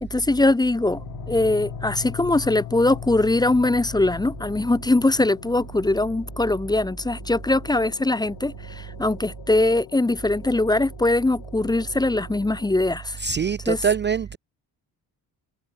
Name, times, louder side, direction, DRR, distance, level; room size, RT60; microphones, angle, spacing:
voice 1, 0.0-13.2 13.7-13.8, left 2 dB, 10° left, 0.8 m, -22 dB
sound 1, 0.8-12.8, left 11 dB, 70° left, 3.2 m, -40 dB
voice 2, 13.2-14.4, right 6 dB, 25° right, 0.5 m, -24 dB
cardioid pair, 150°, 41 cm